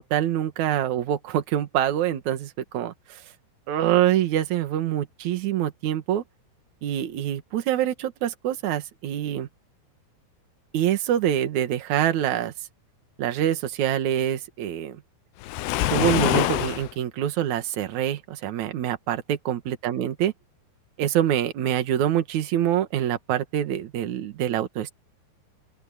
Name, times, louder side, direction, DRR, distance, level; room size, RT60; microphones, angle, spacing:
voice 1, 0.0-3.2 3.7-6.2 6.8-9.5 10.7-12.5 13.2-15.0 15.9-20.3 21.0-24.9, right 11 dB, 55° right, 2.2 m, -25 dB
Waves surf, 15.4-16.9, left 15 dB, 75° left, 2.8 m, -24 dB
open air
omnidirectional pair, 5.3 m